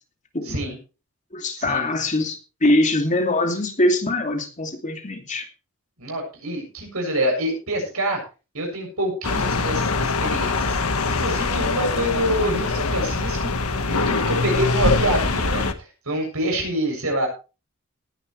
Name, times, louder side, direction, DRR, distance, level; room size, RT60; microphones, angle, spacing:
voice 1, 0.5-0.8 1.6-1.9 6.0-8.2 8.5-10.8 11.0-15.7 16.1-17.3, right 1 dB, 90° right, 2 dB, 7.4 m, -26 dB
voice 2, 1.3-5.5, left 1 dB, 35° left, 4 dB, 2.6 m, -22 dB
sound 1, 9.2-15.7, left 3 dB, 90° left, 1.4 m, -23 dB
19.5 x 10.5 x 3.2 m, 0.33 s
head